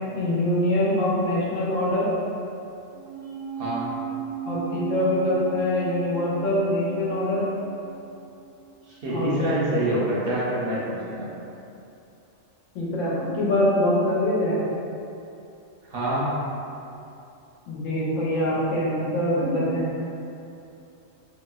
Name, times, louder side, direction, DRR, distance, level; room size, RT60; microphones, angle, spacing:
voice 1, 0.1-2.1 4.4-7.5 9.1-9.3 12.7-14.6 17.7-19.9, left 1 dB, 85° left, -6 dB, 1.1 m, -24 dB
sound 1, 2.9-9.5 9.7-9.8, right 9 dB, 80° right, 1.1 m, -36 dB
voice 2, 8.9-11.3 15.9-16.3, right 1 dB, 60° right, -7 dB, 0.7 m, -26 dB
3.0 x 2.8 x 2.3 m, 2.8 s
omnidirectional pair, 1.3 m